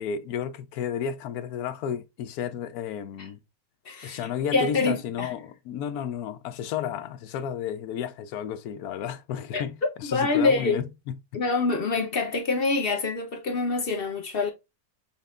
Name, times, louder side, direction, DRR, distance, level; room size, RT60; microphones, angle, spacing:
voice 1, 0.0-3.4 4.0-11.2, left 8 dB, 80° left, 1.1 m, -32 dB
voice 2, 3.9-4.2 4.5-5.3 9.5-9.6 10.0-10.8 11.3-14.5, left 3 dB, 45° left, 0.9 m, -25 dB
5.6 x 3.5 x 2.4 m
omnidirectional pair, 1.6 m